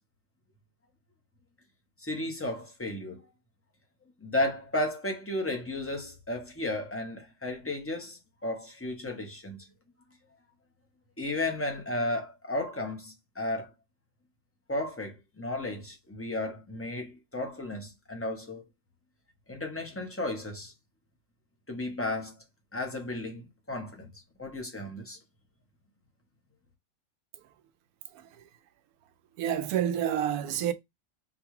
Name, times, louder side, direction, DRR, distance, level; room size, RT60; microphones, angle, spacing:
voice 1, 2.0-3.2 4.2-9.6 11.2-13.7 14.7-18.6 19.5-20.7 21.7-22.4 22.7-24.1 24.4-25.2, left 1 dB, 10° left, 0.8 m, -34 dB
voice 2, 28.1-28.5 29.4-30.7, right 10 dB, 80° right, 1.1 m, -30 dB
5.8 x 2.3 x 3.1 m
omnidirectional pair, 1.5 m